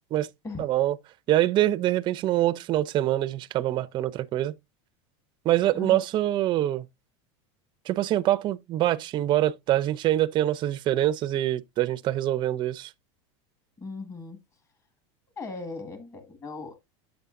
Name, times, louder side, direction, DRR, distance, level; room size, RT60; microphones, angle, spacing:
voice 1, 0.6-1.0 1.3-4.5 5.5-6.9 7.9-12.9, right 13 dB, 30° right, 0.4 m, -25 dB
voice 2, 5.7-6.0 13.8-14.4 15.4-16.7, left 3 dB, 20° left, 1.6 m, -38 dB
7.9 x 6.9 x 2.4 m
supercardioid pair, 140°, 16 cm